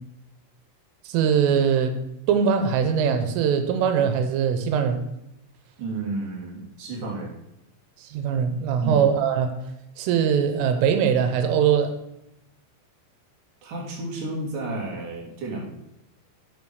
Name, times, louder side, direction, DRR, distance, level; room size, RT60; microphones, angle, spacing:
voice 1, 1.1-1.9 2.3-5.0 8.0-9.5 10.0-11.9, right 7 dB, 90° right, 8 dB, 3.5 m, -21 dB
voice 2, 5.8-7.3 8.8-9.0 13.6-15.7, right 2 dB, 50° right, -2 dB, 3.6 m, -32 dB
8.8 x 6.2 x 6.4 m, 0.87 s
omnidirectional pair, 5.6 m